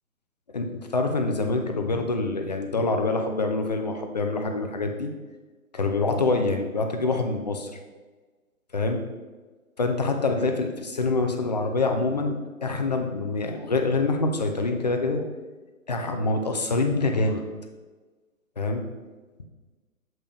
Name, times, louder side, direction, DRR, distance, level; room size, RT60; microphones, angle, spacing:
voice 1, 0.5-5.1 5.7-7.8 8.7-9.0 9.8-15.2 15.9-17.4 18.6-18.8 19.4-19.5, left 3 dB, 30° left, 5 dB, 0.5 m, -25 dB
7.4 x 5.0 x 3.2 m, 1.3 s
figure-of-eight pair, 135°, 43 cm